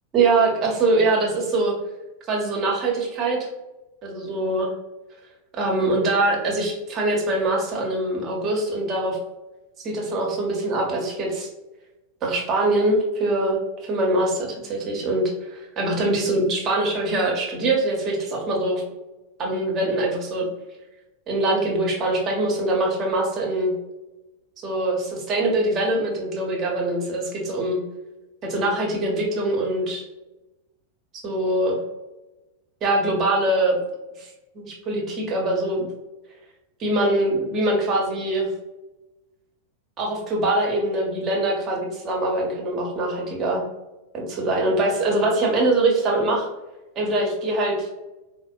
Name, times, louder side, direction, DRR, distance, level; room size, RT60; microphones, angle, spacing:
voice 1, 0.1-1.7 2.3-3.5 4.0-4.7 5.6-9.2 9.8-11.5 12.2-18.8 19.4-20.4 21.3-23.7 24.6-27.8 28.4-30.0 31.2-31.8 32.8-33.8 34.2-35.9 36.8-38.5 40.0-43.6 44.1-46.5 47.0-47.9, right 2 dB, 30° right, -1 dB, 0.8 m, -23 dB
4.1 x 2.0 x 2.3 m, 1.0 s
figure-of-eight pair, 90°, 0 cm